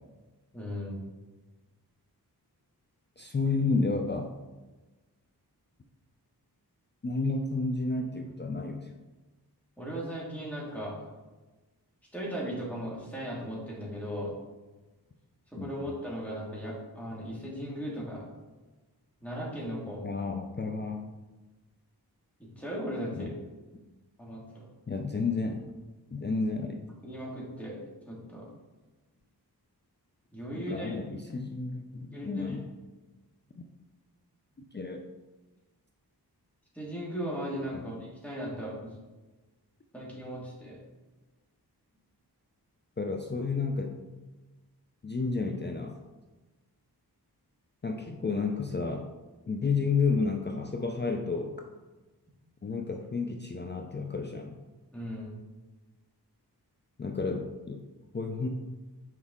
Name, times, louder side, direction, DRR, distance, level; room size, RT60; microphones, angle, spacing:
voice 1, 0.5-1.0 9.8-11.1 12.1-14.4 15.6-18.2 19.2-20.1 22.6-23.4 24.2-24.7 27.0-27.8 28.1-28.5 30.3-31.0 32.1-32.6 36.7-39.0 39.9-40.8 54.9-55.3, equal, 5° left, -4 dB, 1.9 m, -37 dB
voice 2, 3.2-4.3 7.0-8.9 15.6-15.7 20.0-21.0 23.2-23.3 24.9-25.6 26.1-26.8 30.7-32.7 33.5-33.6 34.7-35.1 37.7-37.9 43.0-44.0 45.0-46.0 47.8-49.1 49.5-51.6 52.6-54.6 57.0-57.8 58.1-58.5, left 4 dB, 30° left, 3 dB, 0.4 m, -31 dB
6.3 x 4.6 x 3.6 m, 1.2 s
wide cardioid pair, 80°, 40 cm